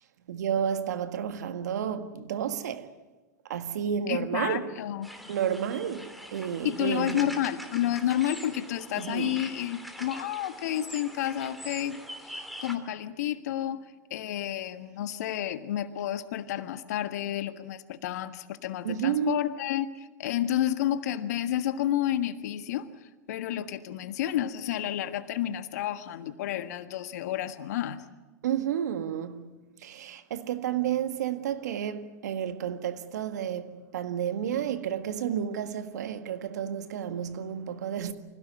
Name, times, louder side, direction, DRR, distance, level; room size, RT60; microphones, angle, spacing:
voice 1, 0.3-2.9 3.5-4.7 5.3-7.3 9.0-9.5 18.8-19.4 28.4-38.1, right 9 dB, 75° right, 1.7 m, -31 dB
voice 2, 4.1-5.1 6.6-13.8 14.1-22.9 23.3-28.0, left 11 dB, 70° left, 1.6 m, -30 dB
sound 1, 5.0-12.8, equal, ahead, 3.1 m, -43 dB
25.0 x 16.5 x 9.6 m
hypercardioid pair, 105°, 9 cm